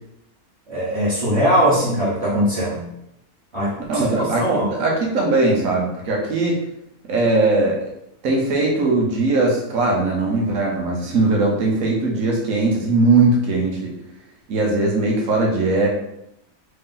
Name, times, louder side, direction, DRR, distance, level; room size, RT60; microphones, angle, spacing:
voice 1, 0.7-2.8 3.5-4.7, equal, 55° right, -8 dB, 1.1 m, -20 dB
voice 2, 3.9-6.6 7.1-7.9 8.2-13.9 14.5-15.9, right 2 dB, 70° right, -1 dB, 1.2 m, -19 dB
3.2 x 2.7 x 3.7 m, 0.79 s
omnidirectional pair, 1.5 m